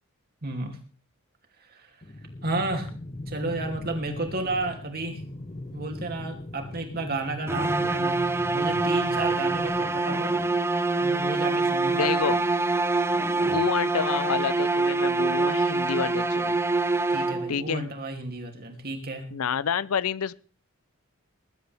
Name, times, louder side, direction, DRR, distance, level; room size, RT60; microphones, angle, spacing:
voice 1, 0.4-0.8 1.7-1.9 2.4-2.9 3.3-5.2 5.7-8.2 8.5-10.3 11.0-12.1 17.1-19.3, right 2 dB, 45° right, 4 dB, 2.8 m, -32 dB
sound 1, 2.0-10.0, left 1 dB, 30° left, 0.8 m, -40 dB
sound 2, 7.5-17.7, right 3 dB, 10° right, 0.5 m, -25 dB
voice 2, 12.0-12.4 13.5-16.6 17.5-17.9 19.3-20.3, left 7 dB, 85° left, 20 dB, 0.6 m, -28 dB
21.0 x 11.5 x 3.5 m, 0.41 s
head